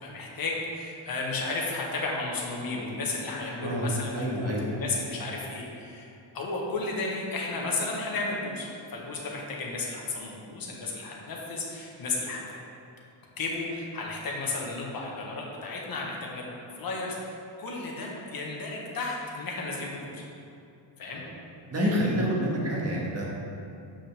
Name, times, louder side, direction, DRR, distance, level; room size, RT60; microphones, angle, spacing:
voice 1, 0.0-12.6 13.4-20.2 21.0-21.2, left 3 dB, 45° left, -2 dB, 1.3 m, -33 dB
voice 2, 4.1-4.7 21.7-23.2, equal, 30° right, -5 dB, 1.6 m, -27 dB
7.4 x 5.3 x 3.5 m, 2.6 s
cardioid pair, 125°, 48 cm